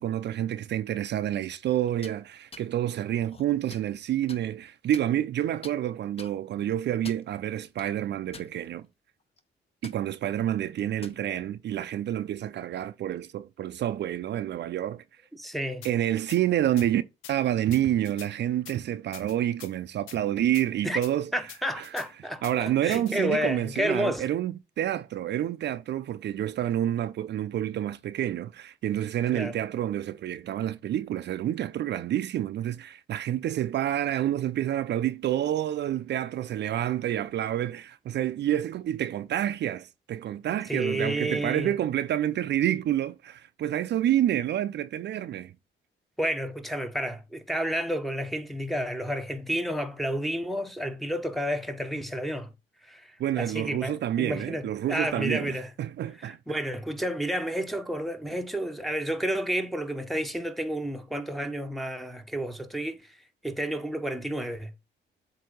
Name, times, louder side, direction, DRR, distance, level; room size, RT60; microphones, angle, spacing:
voice 1, 0.0-8.8 9.8-15.0 15.8-17.0 17.3-21.3 21.8-21.9 22.4-45.5 53.2-56.4, right 11 dB, 60° right, 0.5 m, -28 dB
sound 1, 1.9-2.2 2.5-2.7 3.3-3.9 4.3-4.4 4.9-5.4 5.6-5.8 6.2-6.3 6.9-7.3 7.8-7.9 8.3-8.9 9.2-9.4 9.8-10.0 10.8-11.2, left 4 dB, 30° left, 0.8 m, -45 dB
voice 2, 15.3-15.9 20.8-21.0 21.3-24.3 29.3-29.6 40.7-41.7 46.2-52.5 52.8-55.7 56.2-63.2 63.4-64.7, equal, ahead, 0.9 m, -31 dB
sound 2, 15.8-15.9 16.3-16.4 16.8-16.9 17.2-17.3 17.7-18.3 18.7-18.8 19.1-19.7 20.1-20.2 20.5-20.7 21.0-21.1 21.5-22.1 22.4-22.5 22.9-23.1, left 11 dB, 90° left, 0.6 m, -45 dB
7.7 x 2.8 x 5.2 m
cardioid pair, 90°, 20 cm